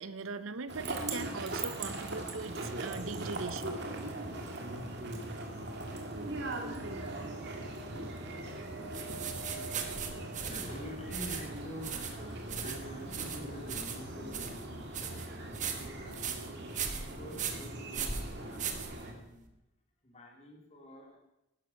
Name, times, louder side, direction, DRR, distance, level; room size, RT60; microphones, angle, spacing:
voice 1, 0.0-3.8, right 4 dB, 75° right, 14 dB, 0.7 m, -40 dB
sound 1, 0.7-19.1, right 2 dB, 55° right, 2.1 m, -40 dB
sound 2, 5.5-11.7 14.0-14.1 14.2-14.3, right 4 dB, 75° left, 2.3 m, -50 dB
voice 2, 6.5-7.6 8.3-9.0 9.4-19.5 20.0-21.2, equal, 30° left, 1 dB, 2.7 m, -49 dB
sound 3, 8.9-19.4, right 7 dB, 35° right, 1.3 m, -39 dB
12.5 x 10.5 x 5.8 m, 0.90 s
head